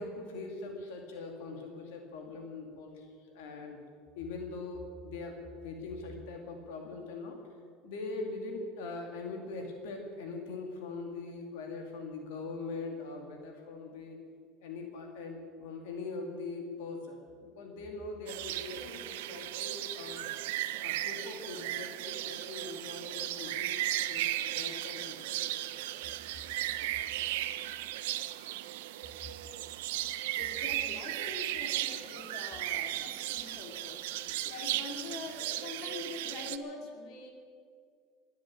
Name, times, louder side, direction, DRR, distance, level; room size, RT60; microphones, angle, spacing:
voice 1, 0.0-3.1 3.3-3.8 4.2-5.3 5.6-7.4 7.8-14.2 14.6-20.3 20.8-23.8 24.1-25.9, left 3 dB, 85° left, 2 dB, 2.6 m, -42 dB
sound 1, 18.3-36.6, right 14 dB, 90° right, 0.7 m, -36 dB
voice 2, 30.4-37.3, left 3 dB, 60° left, 2 dB, 2.6 m, -44 dB
21.5 x 7.6 x 8.8 m, 2.1 s
supercardioid pair, 125°, 0 cm